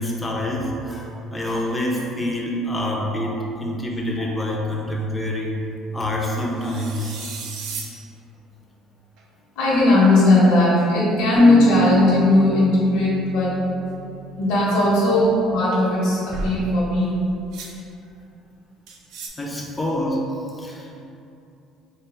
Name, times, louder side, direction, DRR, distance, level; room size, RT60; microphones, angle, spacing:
voice 1, 0.0-5.6 5.9-7.1 19.4-20.3 20.5-21.1, left 1 dB, 10° left, -2 dB, 0.4 m, -26 dB
sound 1, 6.6-7.9 9.2-9.3 9.7-9.8 10.5-10.9 16.1-16.7 17.5-17.7 18.9-19.3, right 3 dB, 70° right, 0.5 m, -34 dB
voice 2, 9.6-13.5 14.4-17.2, left 1 dB, 70° left, -7 dB, 0.9 m, -17 dB
sound 2, 11.4-14.5, left 2 dB, 90° left, 0.5 m, -30 dB
3.4 x 2.4 x 4.3 m, 2.6 s
cardioid pair, 160°, 0 cm